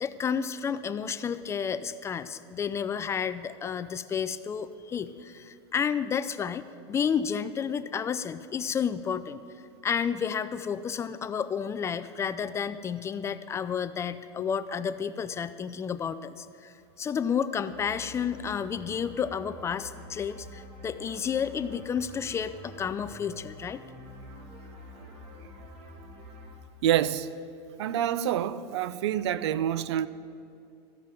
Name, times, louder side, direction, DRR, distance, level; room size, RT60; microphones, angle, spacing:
voice 1, 0.0-9.4 9.8-23.8, left 7 dB, 20° left, 12 dB, 0.4 m, -31 dB
sound 1, 17.6-26.5, equal, 50° right, 2.7 m, -47 dB
voice 2, 26.8-27.3 27.8-30.1, right 11 dB, 85° right, 16 dB, 0.6 m, -27 dB
14.0 x 5.8 x 8.9 m, 2.4 s
supercardioid pair, 135°, 14 cm